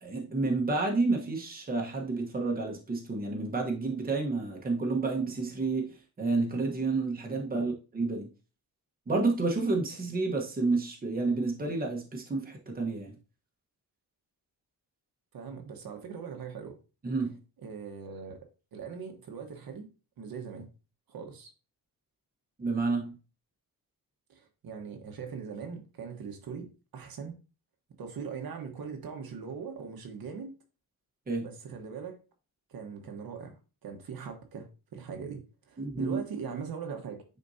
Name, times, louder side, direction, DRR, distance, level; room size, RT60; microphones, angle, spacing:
voice 1, 0.0-8.3 9.1-13.2 17.0-17.4 22.6-23.2 31.3-31.5 35.8-36.2, right 3 dB, 25° right, 1.2 m, -30 dB
voice 2, 15.3-16.8 17.6-18.4 18.7-19.9 20.2-20.7 21.1-21.5 24.3-27.3 28.0-30.5 31.4-32.2 32.7-35.4 35.7-37.2, right 6 dB, 70° right, 1.4 m, -41 dB
9.2 x 4.4 x 2.8 m
wide cardioid pair, 170°, 37 cm